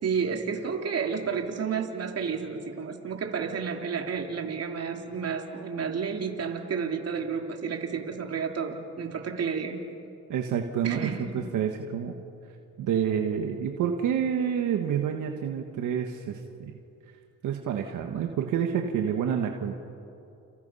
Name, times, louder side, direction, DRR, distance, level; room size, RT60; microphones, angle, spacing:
voice 1, 0.0-9.8 10.8-11.4, right 6 dB, 55° right, 3 dB, 3.1 m, -31 dB
voice 2, 10.3-12.1 12.8-16.7 17.4-19.7, right 8 dB, 85° right, 3 dB, 1.7 m, -28 dB
30.0 x 29.5 x 5.7 m, 2.7 s
cardioid pair, 90°, 30 cm